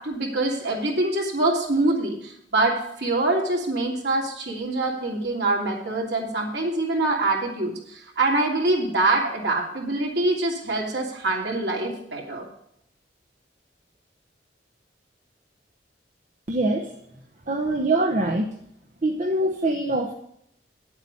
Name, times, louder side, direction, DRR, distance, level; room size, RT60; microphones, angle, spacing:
voice 1, 0.0-2.7 3.0-12.4, right 2 dB, 65° right, -2 dB, 3.0 m, -24 dB
voice 2, 16.5-16.9 17.5-18.5 19.0-20.1, right 2 dB, 45° right, 1 dB, 0.9 m, -23 dB
9.9 x 8.0 x 5.5 m, 0.73 s
head